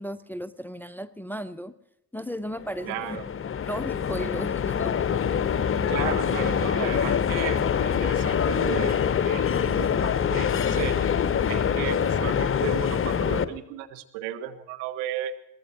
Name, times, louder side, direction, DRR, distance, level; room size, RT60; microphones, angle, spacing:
voice 1, 0.0-1.7 2.1-3.2 3.6-5.0, equal, 5° left, 13 dB, 0.7 m, -35 dB
sound 1, 2.6-13.4, left 7 dB, 25° left, 0.9 m, -25 dB
voice 2, 2.8-3.2 5.9-11.1 11.5-15.3, right 11 dB, 65° right, 7 dB, 1.5 m, -35 dB
22.5 x 18.5 x 2.9 m, 0.78 s
figure-of-eight pair, 50°, 46 cm